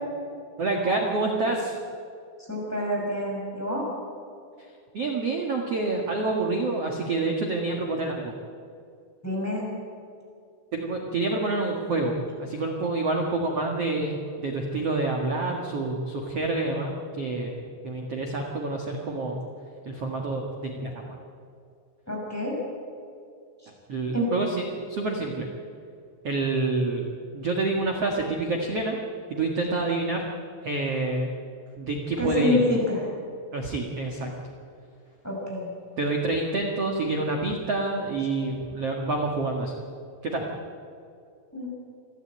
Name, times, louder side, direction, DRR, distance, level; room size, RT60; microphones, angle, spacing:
voice 1, 0.6-1.8 4.9-8.3 10.7-17.6 17.8-19.4 19.8-21.1 23.9-24.5 24.9-25.5 26.2-27.1 27.3-29.0 29.3-30.2 30.6-31.3 31.8-32.6 33.5-34.3 36.0-39.7 40.2-40.5, right 2 dB, 60° right, 1 dB, 1.5 m, -27 dB
voice 2, 2.4-3.8 9.2-9.7 22.1-22.6 23.6-23.7 24.1-24.3 32.2-33.1 35.2-35.7 41.5-41.7, left 1 dB, 5° left, -2 dB, 5.6 m, -27 dB
29.0 x 12.5 x 8.8 m, 2.4 s
omnidirectional pair, 5.8 m